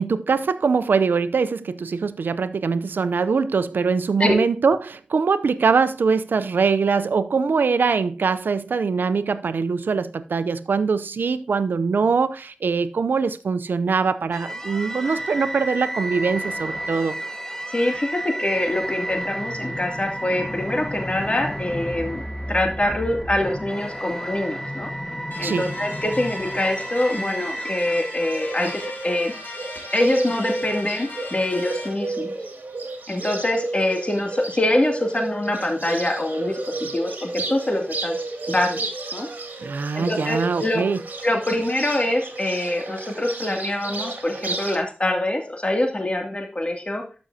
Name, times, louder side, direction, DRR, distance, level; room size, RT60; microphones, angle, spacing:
voice 1, 0.0-17.2 25.4-25.7 39.6-41.0, right 5 dB, 90° right, 0.5 m, -22 dB
sound 1, 14.3-29.5, equal, 15° left, 1.4 m, -32 dB
voice 2, 17.7-22.2 22.5-24.9 25.4-29.3 29.9-32.3 33.1-38.2 38.5-39.3 39.9-40.8 41.2-47.0, left 1 dB, 40° left, 2.5 m, -24 dB
sound 2, 25.3-31.9, left 2 dB, 80° left, 3.0 m, -38 dB
Bird, 28.3-44.8, right 2 dB, 70° right, 2.0 m, -32 dB
12.5 x 6.2 x 2.7 m
cardioid pair, 45°, 3 cm